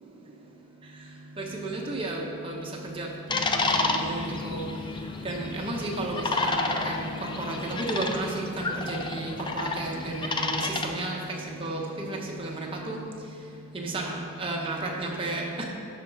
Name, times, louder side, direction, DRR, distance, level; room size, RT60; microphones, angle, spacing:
voice 1, 1.4-2.6 3.0-3.1 3.4-4.6 5.2-7.1 7.5-11.2 11.6-11.8 12.1-12.6 12.9-13.0 13.7-14.1 14.4-15.6, right 2 dB, 25° right, -1 dB, 1.0 m, -32 dB
sound 1, 3.3-10.9, left 3 dB, 20° left, 0.4 m, -30 dB
11.5 x 5.0 x 3.9 m, 2.8 s
head